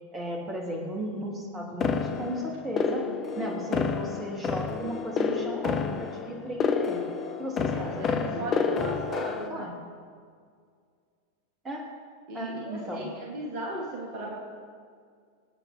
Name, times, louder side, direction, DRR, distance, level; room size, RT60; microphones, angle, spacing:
voice 1, 0.1-3.1 3.3-7.0 7.4-8.5 9.5-9.7 11.6-11.8 12.3-13.0, equal, 20° right, -1 dB, 3.2 m, -35 dB
sound 1, 1.8-9.5, left 6 dB, 30° left, 1.2 m, -29 dB
voice 2, 7.7-9.7 12.3-14.4, right 2 dB, 45° right, -1 dB, 2.6 m, -36 dB
25.5 x 9.1 x 4.5 m, 2.1 s
figure-of-eight pair, 90°, 0 cm